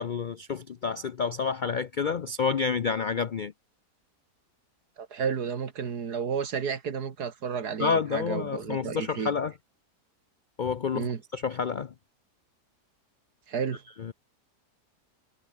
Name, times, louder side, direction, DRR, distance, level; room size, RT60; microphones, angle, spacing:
voice 1, 0.0-3.5 7.8-9.5 10.6-11.9 14.0-14.1, left 5 dB, 65° left, 0.4 m, -29 dB
voice 2, 5.0-9.3 10.9-11.2 13.5-13.8, right 6 dB, 80° right, 2.3 m, -32 dB
omnidirectional pair, 1.7 m